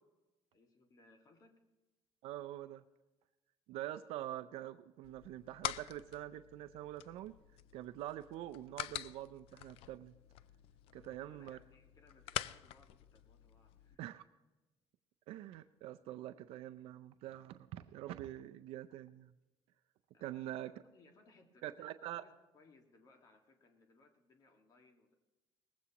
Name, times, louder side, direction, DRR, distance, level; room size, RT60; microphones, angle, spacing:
voice 1, 0.5-1.7 10.9-14.2 20.1-25.1, left 2 dB, 40° left, 3 dB, 1.8 m, -66 dB
voice 2, 2.2-2.8 3.7-7.3 7.7-10.1 10.9-11.6 14.0-14.2 15.3-19.3 20.2-20.7 21.6-22.2, right 13 dB, 80° right, 10 dB, 0.5 m, -45 dB
sound 1, 5.0-13.9, left 13 dB, 75° left, 0.4 m, -46 dB
19.5 x 15.5 x 2.9 m, 1.1 s
cardioid pair, 160°, 10 cm